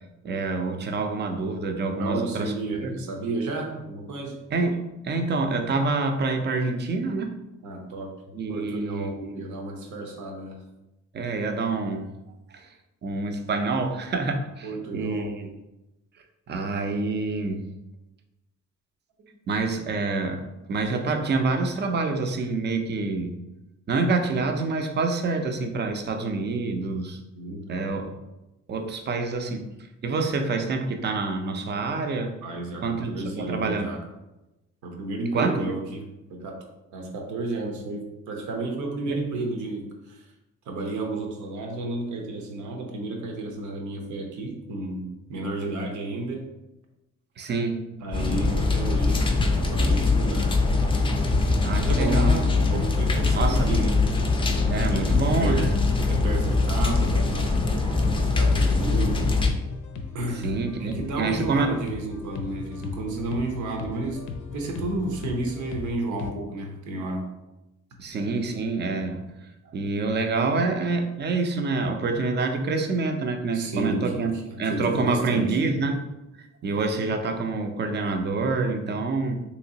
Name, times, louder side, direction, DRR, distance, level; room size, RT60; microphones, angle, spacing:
voice 1, 0.2-2.5 2.8-2.9 4.5-7.3 8.3-9.5 11.1-12.1 12.5-12.7 13.0-15.5 16.5-17.7 19.5-20.4 20.7-23.3 23.9-27.2 27.7-28.1 28.7-29.7 30.0-32.3 32.8-34.0 35.3-35.7 39.1-39.2 47.4-47.8 51.6-52.7 53.3-53.8 54.7-55.8 60.4-61.8 68.0-69.2 69.7-76.1 76.6-79.4, right 3 dB, 35° right, 5 dB, 0.5 m, -27 dB
voice 2, 2.0-4.3 7.6-8.1 8.5-10.6 14.6-15.3 27.3-27.9 32.4-34.0 34.8-36.6 36.9-40.2 40.7-46.5 48.0-50.6 51.8-54.1 54.9-55.7 56.1-59.2 60.1-64.2 64.5-67.2 73.5-75.6, right 2 dB, 75° right, 2 dB, 0.8 m, -32 dB
sound 1, 48.1-59.5, left 3 dB, 15° left, 0.4 m, -22 dB
sound 2, 48.3-66.3, left 4 dB, 80° left, 0.5 m, -37 dB
3.2 x 2.9 x 2.7 m, 0.97 s
cardioid pair, 90°, 30 cm